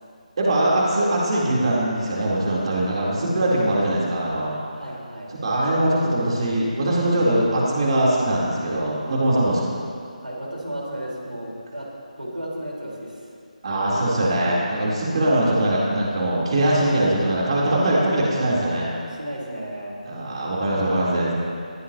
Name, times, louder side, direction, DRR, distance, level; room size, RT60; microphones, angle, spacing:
voice 1, 0.4-4.6 5.4-9.7 13.6-18.9 20.0-21.3, right 1 dB, 45° right, -5 dB, 3.8 m, -21 dB
voice 2, 4.7-5.4 10.2-11.9 12.2-13.3 15.1-15.4 16.9-17.2 19.0-20.0, right 1 dB, 90° right, -3 dB, 4.6 m, -34 dB
22.5 x 16.5 x 3.0 m, 2.4 s
figure-of-eight pair, 155°, 4 cm